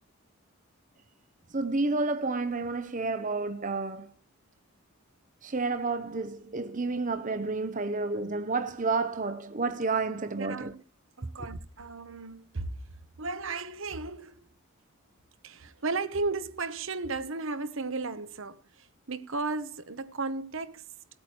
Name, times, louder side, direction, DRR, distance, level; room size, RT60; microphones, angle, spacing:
voice 1, 1.5-4.1 5.4-10.7, right 3 dB, 35° right, 0.8 m, -30 dB
voice 2, 10.4-10.8 11.2-12.8 13.2-14.4 15.4-20.8, right 3 dB, 65° right, 1.0 m, -34 dB
17.5 x 8.8 x 4.4 m
head